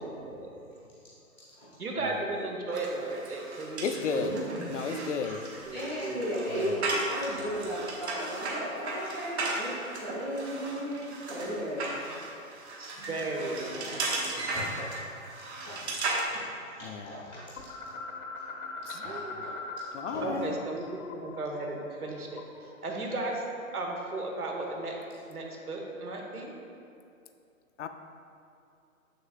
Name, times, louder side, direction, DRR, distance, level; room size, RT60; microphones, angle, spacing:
voice 1, 1.8-4.6 5.6-5.8 6.0-6.4 12.8-13.9 14.3-14.5 18.9-19.4 20.2-23.4 23.7-25.0 25.3-26.6, right 2 dB, 90° right, 0 dB, 1.3 m, -35 dB
sound 1, 2.7-16.2, right 2 dB, 50° right, 1.1 m, -36 dB
voice 2, 3.8-4.3 4.7-5.4 6.5-6.9 16.8-17.3 18.8-19.3 19.9-20.6 27.8-27.9, left 6 dB, 55° left, 8 dB, 0.5 m, -34 dB
voice 3, 5.7-12.4 12.9-13.2 13.6-13.9 14.5-15.9 16.3-16.5 16.7-17.5 19.0-19.6 19.9-20.4, equal, 10° right, -12 dB, 0.7 m, -36 dB
sound 2, 17.6-20.2 20.4-22.7, left 3 dB, 80° left, 1.0 m, -41 dB
6.7 x 6.6 x 2.5 m, 2.6 s
hypercardioid pair, 155°, 43 cm